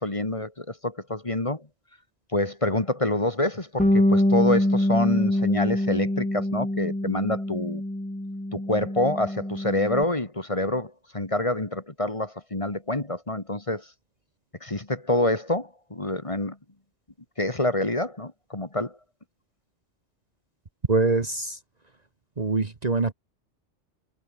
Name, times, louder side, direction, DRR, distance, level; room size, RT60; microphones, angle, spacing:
voice 1, 0.0-1.7 2.3-7.8 8.5-13.9 14.6-16.6 17.4-19.0, left 1 dB, 30° left, 2.1 m, -27 dB
Bass guitar, 3.8-10.0, left 1 dB, 5° left, 1.2 m, -25 dB
voice 2, 20.9-21.6 22.4-23.1, right 3 dB, 35° right, 1.4 m, -24 dB
omnidirectional pair, 1.2 m